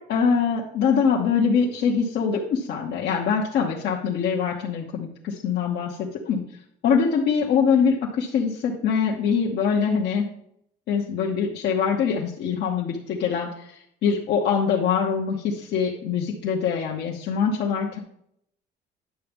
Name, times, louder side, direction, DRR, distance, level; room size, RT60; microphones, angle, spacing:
voice 1, 0.0-6.0 6.2-6.4 6.8-10.3 10.9-13.5 14.0-18.0, left 6 dB, 60° left, -2 dB, 1.1 m, -23 dB
10.0 x 7.0 x 3.6 m, 0.73 s
cardioid pair, 160°, 20 cm